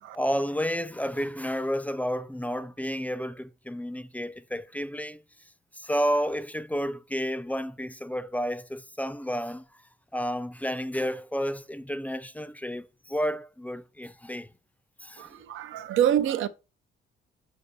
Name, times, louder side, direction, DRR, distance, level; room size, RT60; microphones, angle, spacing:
voice 1, 0.1-5.2 5.7-9.6 10.1-14.5 15.0-15.3, equal, 5° left, 0.5 m, -31 dB
voice 2, 15.2-16.5, right 10 dB, 80° right, 0.6 m, -26 dB
5.7 x 4.6 x 4.1 m
cardioid pair, 90°, 20 cm